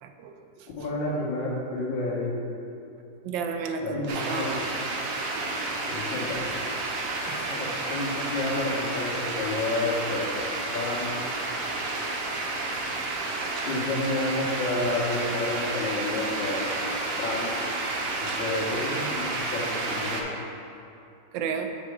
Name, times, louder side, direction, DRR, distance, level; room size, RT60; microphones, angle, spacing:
voice 1, 0.0-0.3 0.6-0.7 3.2-4.6 7.3-7.6 21.3-21.7, right 5 dB, 80° right, 5 dB, 1.3 m, -32 dB
voice 2, 0.8-2.5 3.8-4.6 5.9-6.5 7.5-10.4 10.7-11.2 13.7-16.8 17.2-17.6 18.4-20.3, left 2 dB, 90° left, -4 dB, 1.9 m, -30 dB
sound 1, 4.1-20.2, right 2 dB, 60° right, 1.0 m, -31 dB
7.4 x 4.3 x 4.9 m, 2.7 s
omnidirectional pair, 2.0 m